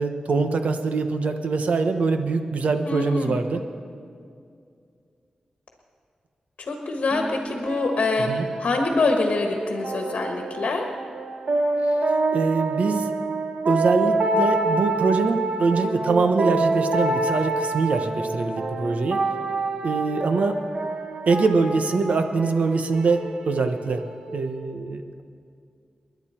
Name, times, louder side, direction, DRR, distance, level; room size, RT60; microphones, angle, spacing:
voice 1, 0.0-3.6 8.3-8.5 12.3-13.1 13.6-19.2 19.8-20.6 21.3-24.0 24.3-25.2, right 4 dB, 75° right, 7 dB, 1.1 m, -23 dB
voice 2, 2.8-3.4 6.6-8.3 8.6-10.8, left 3 dB, 70° left, 2 dB, 1.5 m, -24 dB
sound 1, 7.1-24.6, right 2 dB, 60° right, 1.5 m, -27 dB
29.5 x 10.5 x 4.5 m, 2.4 s
wide cardioid pair, 105°, 2 cm